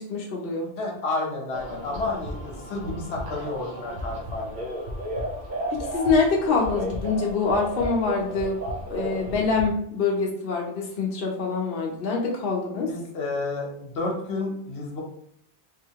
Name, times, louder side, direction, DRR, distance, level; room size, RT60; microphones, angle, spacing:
voice 1, 0.0-0.7 5.7-8.6 8.9-12.9, left 4 dB, 60° left, -2 dB, 0.9 m, -25 dB
voice 2, 0.8-4.6 12.9-15.0, left 3 dB, 80° left, -1 dB, 1.1 m, -31 dB
sound 1, 1.5-9.7, equal, 50° right, 0.9 m, -33 dB
3.6 x 2.8 x 2.8 m, 0.71 s
omnidirectional pair, 1.1 m